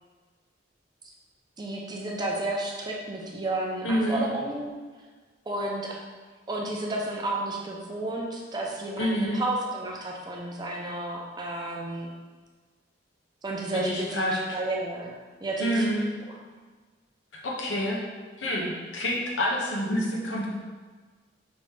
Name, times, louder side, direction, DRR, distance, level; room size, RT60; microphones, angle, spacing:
voice 1, 1.6-4.7 5.5-6.0 6.5-12.1 13.4-15.1 15.4-15.9, right 2 dB, 25° right, -1 dB, 0.6 m, -32 dB
voice 2, 3.8-4.2 9.0-9.4 13.7-14.6 15.6-16.1 17.3-18.0 18.4-20.5, equal, 85° left, -3 dB, 0.9 m, -27 dB
5.1 x 2.8 x 3.5 m, 1.4 s
head